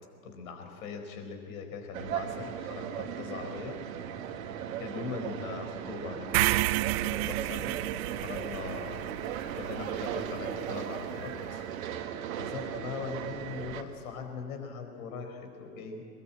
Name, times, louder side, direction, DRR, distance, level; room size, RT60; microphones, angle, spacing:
voice 1, 0.2-3.8 4.3-7.8 8.1-11.7 12.1-16.0, left 5 dB, 60° left, 5 dB, 4.5 m, -41 dB
sound 1, 1.9-13.8, right 9 dB, 60° right, 2.1 m, -37 dB
sound 2, 6.3-10.5, right 18 dB, 40° right, 0.5 m, -31 dB
23.0 x 21.5 x 8.8 m, 2.5 s
hypercardioid pair, 100°, 46 cm